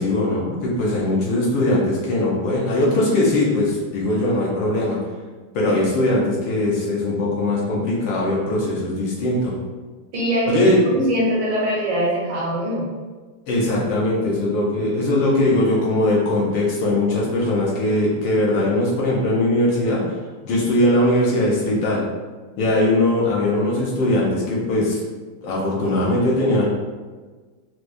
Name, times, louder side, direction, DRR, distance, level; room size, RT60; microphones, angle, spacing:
voice 1, 0.0-5.0 5.5-9.5 10.5-10.8 13.5-20.1 20.4-22.0 22.6-25.0 25.4-26.7, left 1 dB, 65° left, -5 dB, 1.5 m, -20 dB
voice 2, 10.1-10.6 10.9-12.9, equal, 65° right, -5 dB, 1.7 m, -22 dB
4.6 x 2.3 x 2.6 m, 1.4 s
omnidirectional pair, 2.3 m